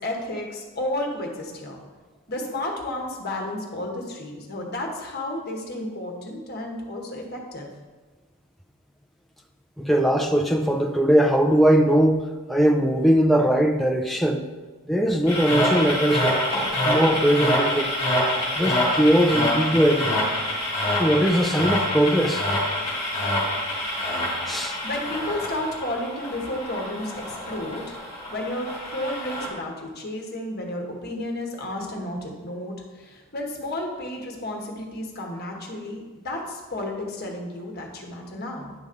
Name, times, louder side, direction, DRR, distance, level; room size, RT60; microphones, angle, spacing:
voice 1, 0.0-1.8 2.3-7.7 24.8-28.0 28.3-38.7, left 1 dB, 45° left, 0 dB, 1.2 m, -32 dB
voice 2, 9.8-12.2 12.5-14.5 14.9-16.4 16.9-17.9 18.6-20.3 21.0-22.4 24.5-24.8, equal, ahead, 2 dB, 0.4 m, -20 dB
sound 1, 15.3-29.5, left 1 dB, 25° left, 2.4 m, -26 dB
9.6 x 5.1 x 3.8 m, 1.3 s
head